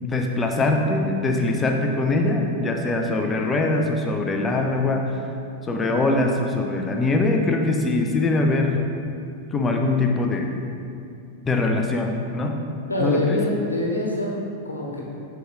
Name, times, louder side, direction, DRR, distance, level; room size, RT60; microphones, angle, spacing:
voice 1, 0.0-5.2 5.7-8.8 9.5-10.5 11.4-12.6 13.0-13.4, left 2 dB, 20° left, 2 dB, 0.7 m, -22 dB
voice 2, 12.9-15.0, left 1 dB, 80° left, -2 dB, 1.2 m, -25 dB
7.9 x 4.8 x 3.8 m, 2.6 s
figure-of-eight pair, 90°, 0 cm